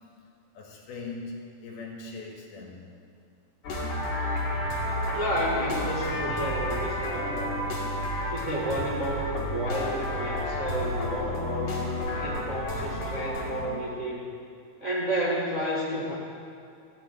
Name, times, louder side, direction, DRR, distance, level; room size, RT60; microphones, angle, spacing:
voice 1, 0.6-2.9, left 3 dB, 80° left, -1 dB, 4.0 m, -40 dB
sound 1, 3.6-13.7, left 1 dB, 60° left, 3.9 m, -31 dB
voice 2, 5.1-7.6 8.3-11.8 12.2-14.2 14.8-16.1, right 1 dB, 40° right, -5 dB, 1.0 m, -31 dB
15.0 x 7.7 x 9.3 m, 2.4 s
omnidirectional pair, 4.4 m